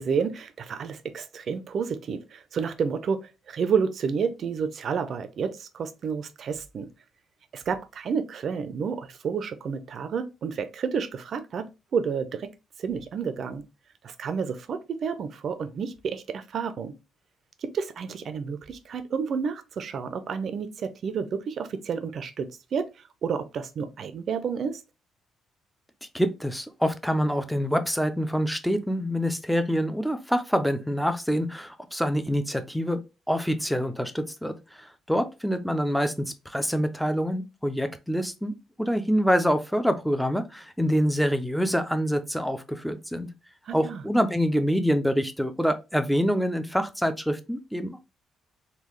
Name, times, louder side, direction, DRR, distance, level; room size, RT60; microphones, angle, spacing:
voice 1, 0.0-6.9 7.5-12.5 12.8-13.6 14.0-16.9 17.6-22.9 23.2-24.8 43.7-44.0, right 6 dB, 60° right, 0.5 m, -30 dB
voice 2, 26.1-33.0 33.3-43.3 43.7-48.0, equal, ahead, 0.5 m, -26 dB
3.8 x 2.3 x 3.1 m
cardioid pair, 90°, 0 cm